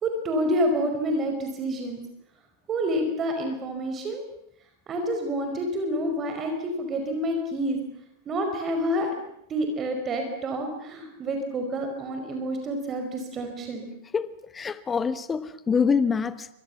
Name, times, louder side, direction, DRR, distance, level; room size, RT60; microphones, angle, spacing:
voice 1, 0.0-2.0 2.7-4.2 4.9-7.8 8.2-9.1 9.5-13.9, equal, 25° right, 5.0 m, -28 dB
voice 2, 14.1-16.5, left 6 dB, 20° left, 1.1 m, -25 dB
28.0 x 26.0 x 7.3 m
figure-of-eight pair, 90°, 0 cm